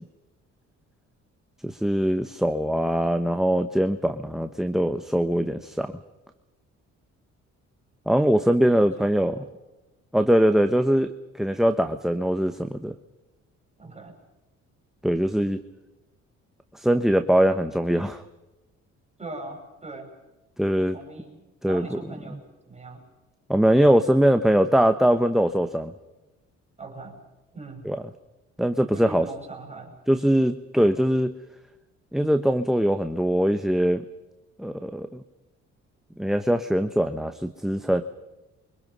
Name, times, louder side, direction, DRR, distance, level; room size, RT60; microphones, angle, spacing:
voice 1, 1.6-5.9 8.1-9.4 10.1-12.9 15.0-15.6 16.7-18.2 20.6-20.9 21.6-21.8 23.5-25.9 27.9-28.0 28.6-29.2 30.1-31.3 32.1-34.0 34.6-35.2 36.2-38.0, equal, ahead, 7 dB, 1.0 m, -22 dB
voice 2, 8.6-9.6 13.8-14.2 19.2-20.1 20.8-23.1 25.4-25.5 26.8-27.2 27.5-27.9 28.9-30.0, right 3 dB, 20° right, 1 dB, 5.6 m, -41 dB
28.5 x 25.0 x 5.5 m, 1.1 s
cardioid pair, 90°, 30 cm